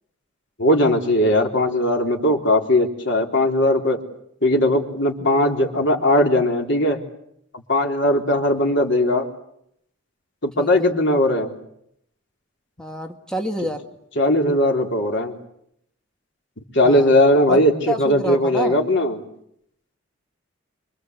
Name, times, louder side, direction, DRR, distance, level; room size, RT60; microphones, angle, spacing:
voice 1, 0.6-4.0 4.4-7.0 7.7-9.3 10.4-11.5 14.2-15.3 16.7-19.2, left 1 dB, 65° left, 2 dB, 3.7 m, -18 dB
voice 2, 10.6-10.9 12.8-13.8 16.8-17.1 17.5-17.6 17.9-18.8, equal, 5° left, 3 dB, 1.8 m, -28 dB
27.0 x 24.5 x 8.1 m, 0.74 s
head